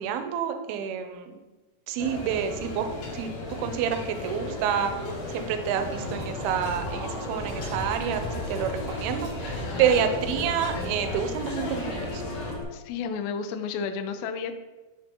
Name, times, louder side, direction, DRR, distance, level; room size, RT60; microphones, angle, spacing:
voice 1, 0.0-1.4 1.9-2.9 3.1-4.9 5.3-8.2 8.5-12.2, right 8 dB, 80° right, 7 dB, 2.3 m, -28 dB
sound 1, 2.0-12.5, left 2 dB, 65° left, 1.9 m, -35 dB
sound 2, 6.0-12.6, left 1 dB, 30° left, 0.7 m, -37 dB
voice 2, 12.7-14.6, left 6 dB, 80° left, 7 dB, 2.2 m, -32 dB
10.5 x 3.7 x 2.9 m, 1.2 s
omnidirectional pair, 4.5 m